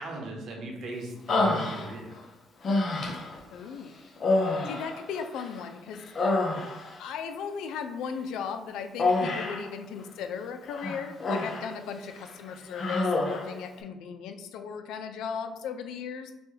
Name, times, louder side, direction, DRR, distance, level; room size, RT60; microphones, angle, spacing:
voice 1, 0.0-2.2, right 2 dB, 60° right, 1 dB, 1.0 m, -38 dB
Human voice, 1.3-2.2 2.6-3.4 4.2-5.6 5.9-7.0 9.0-9.7 10.7-11.7 12.1-12.3 12.7-13.5, left 2 dB, 40° left, 0.7 m, -28 dB
voice 2, 3.5-3.9 4.7-6.0 7.0-16.3, left 6 dB, 80° left, 8 dB, 0.4 m, -37 dB
6.0 x 2.3 x 3.3 m, 0.99 s
cardioid pair, 125°, 0 cm